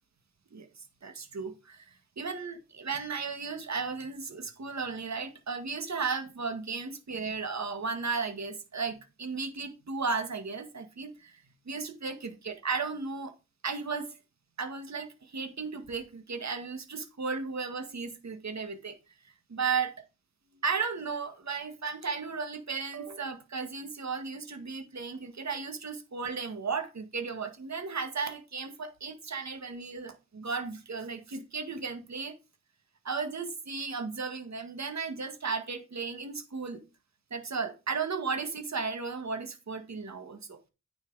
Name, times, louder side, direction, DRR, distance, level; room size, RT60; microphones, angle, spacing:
voice 1, 0.5-1.9 2.2-13.3 13.6-14.1 14.6-19.0 19.5-19.9 20.6-32.3 33.1-36.8 37.3-40.6, right 5 dB, 55° right, 1.8 m, -35 dB
9.1 x 5.8 x 4.8 m
cardioid pair, 60°, 33 cm